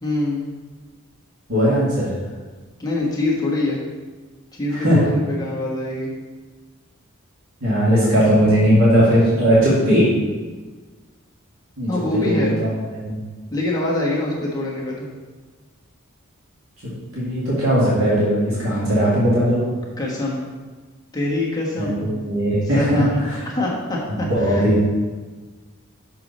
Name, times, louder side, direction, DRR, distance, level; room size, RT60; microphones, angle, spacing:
voice 1, 0.0-0.5 2.8-3.8 4.5-6.1 11.9-12.5 13.5-15.1 20.0-20.4 21.1-22.3 22.7-24.6, left 2 dB, 20° left, -5 dB, 1.3 m, -24 dB
voice 2, 1.5-2.1 4.7-5.0 7.6-10.1 11.8-13.2 17.1-19.6 21.8-23.4 24.1-24.8, equal, 70° right, -8 dB, 2.1 m, -18 dB
6.3 x 4.7 x 5.3 m, 1.3 s
head